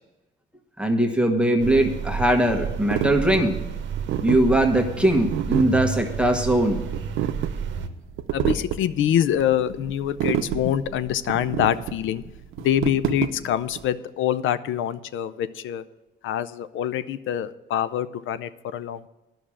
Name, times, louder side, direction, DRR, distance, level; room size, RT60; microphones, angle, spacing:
voice 1, 0.8-3.6 4.2-6.8, right 1 dB, 5° right, 3 dB, 1.3 m, -20 dB
sound 1, 1.6-7.9, right 7 dB, 70° right, 0.9 m, -31 dB
sound 2, 2.9-13.9, right 10 dB, 90° right, 0.6 m, -29 dB
voice 2, 8.3-12.2 12.6-15.8 16.2-19.1, left 10 dB, 80° left, 15 dB, 0.5 m, -25 dB
10.5 x 6.2 x 8.5 m, 1.0 s
cardioid pair, 90°, 20 cm